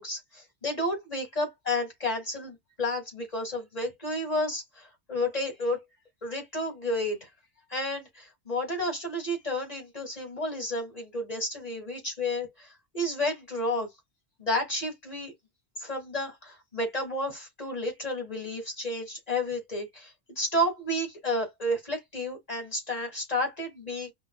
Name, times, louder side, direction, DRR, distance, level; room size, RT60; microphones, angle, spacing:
voice 1, 0.0-5.8 6.2-7.3 7.7-12.7 12.9-13.9 14.4-15.3 15.8-24.1, left 1 dB, 35° left, 2.1 m, -31 dB
5.5 x 2.3 x 2.3 m
omnidirectional pair, 1.1 m